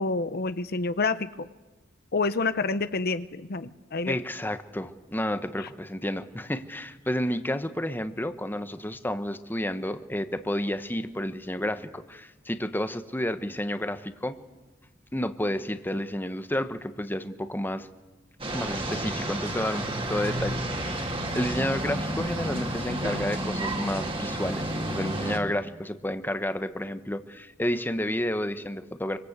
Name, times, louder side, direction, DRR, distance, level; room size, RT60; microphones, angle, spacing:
voice 1, 0.0-1.5 2.1-4.1 5.6-5.7, left 3 dB, 55° left, 12 dB, 0.8 m, -28 dB
voice 2, 4.0-14.4 15.1-17.9 18.5-29.2, left 1 dB, 10° left, 9 dB, 1.1 m, -31 dB
sound 1, 18.4-25.4, right 1 dB, 30° right, 3.0 m, -31 dB
25.5 x 25.0 x 8.2 m, 1.1 s
head